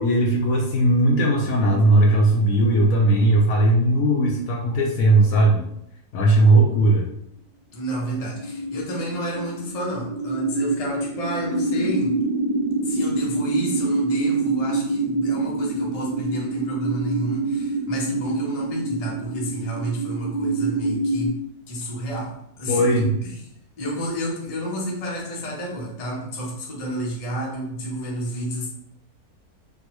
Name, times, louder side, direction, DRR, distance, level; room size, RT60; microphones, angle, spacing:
voice 1, 0.0-5.7 6.1-7.0 22.7-23.1, right 1 dB, 70° left, -1 dB, 0.9 m, -18 dB
voice 2, 7.7-12.2 12.8-21.4 21.7-23.4 23.8-28.7, equal, 35° left, -3 dB, 0.6 m, -30 dB
sound 1, 8.2-21.3, right 3 dB, 75° right, 1.2 m, -26 dB
3.7 x 2.1 x 3.0 m, 0.74 s
omnidirectional pair, 1.7 m